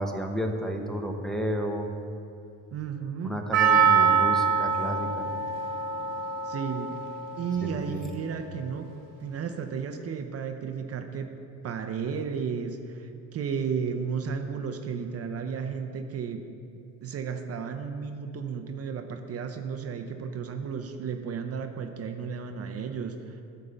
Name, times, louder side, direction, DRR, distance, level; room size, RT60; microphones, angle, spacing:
voice 1, 0.0-1.9 3.2-5.3 7.6-8.0, equal, ahead, 1 dB, 0.9 m, -31 dB
voice 2, 2.7-3.4 6.4-7.0 7.4-9.0 9.2-11.3 11.6-16.4 17.0-23.4, right 6 dB, 45° right, 6 dB, 0.7 m, -33 dB
Percussion, 3.5-8.2, right 6 dB, 85° right, 1.4 m, -25 dB
11.0 x 3.7 x 6.6 m, 2.5 s
supercardioid pair, 85°, 34 cm